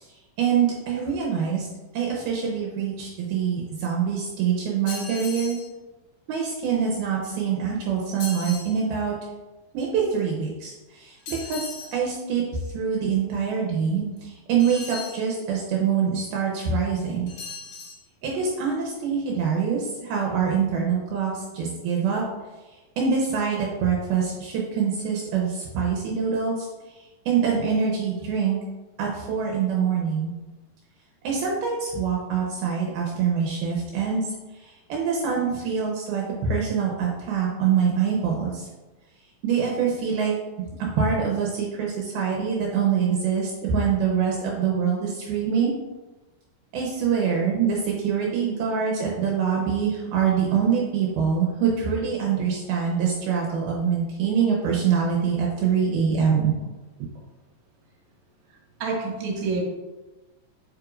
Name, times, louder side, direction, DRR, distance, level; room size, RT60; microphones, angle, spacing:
voice 1, 0.4-1.7 1.9-5.6 6.3-9.2 9.7-11.7 11.9-12.4 12.7-17.3 18.2-22.2 23.0-26.7 27.3-28.6 29.0-30.3 31.2-34.3 34.6-38.7 39.4-40.3 40.8-45.7 46.7-56.5, right 6 dB, 75° right, -2 dB, 2.6 m, -24 dB
sound 1, 4.9-5.7 8.2-8.7 11.3-12.0 14.6-15.2 17.3-18.0, left 4 dB, 70° left, 3.4 m, -37 dB
voice 2, 58.5-59.6, right 4 dB, 50° right, -3 dB, 2.5 m, -29 dB
7.9 x 5.5 x 2.5 m, 1.1 s
omnidirectional pair, 4.7 m